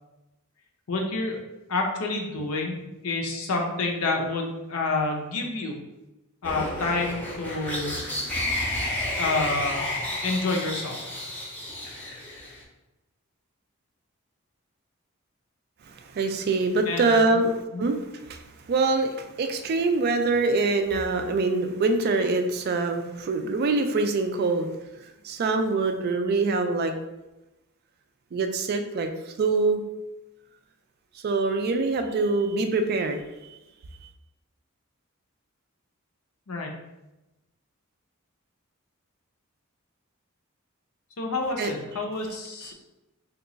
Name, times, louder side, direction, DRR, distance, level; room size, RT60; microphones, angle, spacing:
voice 1, 0.9-1.4 1.7-5.7 6.4-7.9 9.2-9.8 10.2-11.0 16.9-17.4 17.7-17.8 36.5-36.7 41.2-42.7, left 3 dB, 80° left, 1 dB, 0.6 m, -28 dB
sound 1, 6.4-12.6, left 1 dB, 10° left, 0.6 m, -31 dB
voice 2, 15.9-24.7 25.2-26.9 28.3-29.8 31.2-33.6 41.6-41.7, right 3 dB, 45° right, 6 dB, 0.3 m, -25 dB
2.9 x 2.3 x 3.8 m, 1.0 s
head